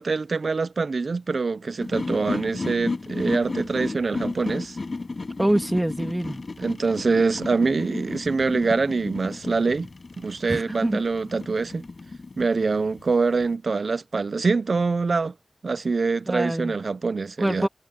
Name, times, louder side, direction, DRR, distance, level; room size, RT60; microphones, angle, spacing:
voice 1, 0.0-4.8 6.6-9.9 10.2-11.8 12.4-15.3 15.6-17.7, right 4 dB, 70° right, 0.6 m, -24 dB
sound 1, 1.8-13.5, left 3 dB, 55° left, 6.6 m, -33 dB
voice 2, 5.4-6.4 10.5-11.0 16.3-16.7 17.4-17.7, right 1 dB, 15° right, 2.5 m, -25 dB
wide cardioid pair, 75°, 0 cm